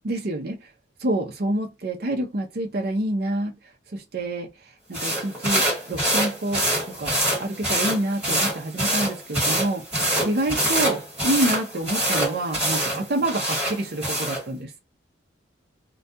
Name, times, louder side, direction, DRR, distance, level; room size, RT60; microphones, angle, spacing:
voice 1, 0.0-0.6 1.0-3.5 3.9-4.5 4.9-6.6 7.0-9.8 10.2-14.7, right 1 dB, 50° right, 0.5 m, -27 dB
sound 1, 4.9-14.4, right 1 dB, 5° right, 1.4 m, -25 dB
2.3 x 2.2 x 2.6 m
head